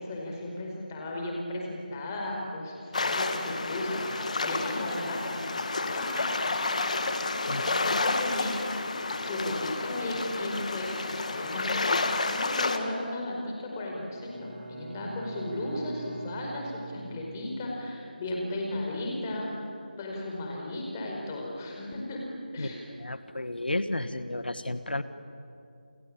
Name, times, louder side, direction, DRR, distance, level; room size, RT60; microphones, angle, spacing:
voice 1, 0.0-6.3 7.4-8.9 9.2-19.7 20.0-22.2 22.5-22.8, left 1 dB, 20° left, 0 dB, 5.0 m, -35 dB
sound 1, 2.9-12.8, left 3 dB, 45° left, 2.0 m, -30 dB
voice 2, 7.5-7.8 22.6-22.7 23.0-25.0, left 1 dB, 90° left, 11 dB, 1.6 m, -32 dB
Bowed string instrument, 14.1-17.7, right 3 dB, 80° right, 6.3 m, -43 dB
30.0 x 21.5 x 8.8 m, 2.6 s
figure-of-eight pair, 170°, 5 cm